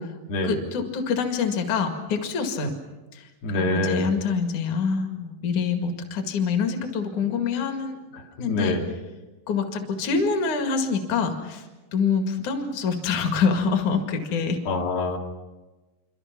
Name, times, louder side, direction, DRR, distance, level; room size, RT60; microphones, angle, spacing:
voice 1, 0.4-2.7 3.1-8.0 8.3-8.7 9.5-11.7 11.9-14.6, left 5 dB, 60° left, 5 dB, 3.4 m, -25 dB
voice 2, 3.4-4.1 8.1-8.8 14.7-15.2, left 2 dB, 90° left, 1 dB, 4.2 m, -26 dB
27.0 x 25.5 x 6.0 m, 1.2 s
omnidirectional pair, 4.0 m